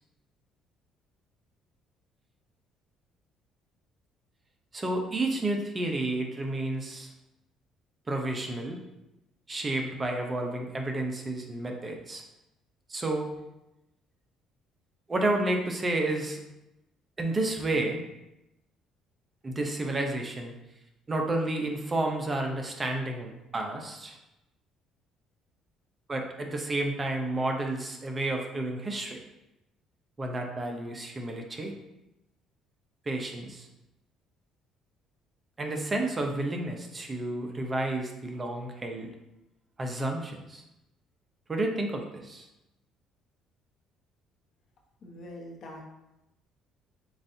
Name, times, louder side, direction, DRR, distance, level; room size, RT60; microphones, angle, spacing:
voice 1, 4.7-7.1 8.1-8.8 9.5-12.2 12.9-13.3 15.1-16.4 17.2-18.0 19.4-20.5 21.1-24.2 26.1-29.2 30.2-31.7 33.1-33.7 35.6-39.1 39.8-40.6 41.5-42.5, right 2 dB, 30° right, 2 dB, 0.8 m, -31 dB
voice 2, 45.0-45.8, left 1 dB, 55° left, -1 dB, 1.1 m, -43 dB
7.2 x 2.7 x 2.8 m, 0.91 s
supercardioid pair, 75°, 0 cm